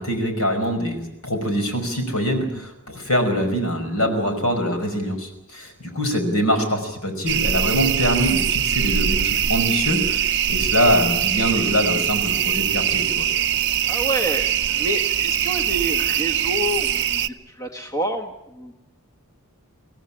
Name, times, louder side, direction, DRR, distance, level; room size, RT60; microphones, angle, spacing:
voice 1, 0.0-13.3, equal, 70° left, 6 dB, 5.4 m, -23 dB
sound 1, 7.3-17.3, right 9 dB, 55° right, 0.8 m, -22 dB
voice 2, 13.9-17.2 17.5-18.7, right 1 dB, 15° left, 4 dB, 1.6 m, -28 dB
24.5 x 16.5 x 10.0 m, 0.87 s
head